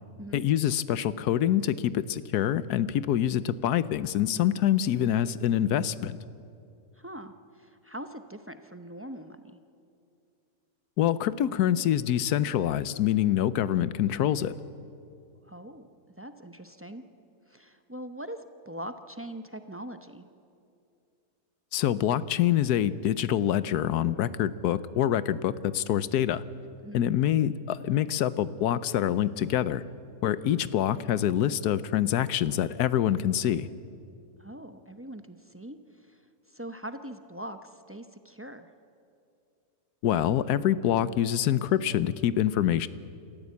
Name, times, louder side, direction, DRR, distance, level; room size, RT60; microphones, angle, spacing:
voice 1, 0.3-6.2 11.0-14.5 21.7-26.4 26.9-29.8 30.2-33.7 40.0-42.9, left 11 dB, 85° left, 16 dB, 1.2 m, -26 dB
voice 2, 7.0-9.6 15.4-15.9 16.2-17.0 17.5-20.3 26.8-27.1 34.4-36.2 36.5-38.7, right 1 dB, 20° right, 8 dB, 0.3 m, -42 dB
27.5 x 14.0 x 8.4 m, 2.5 s
omnidirectional pair, 1.6 m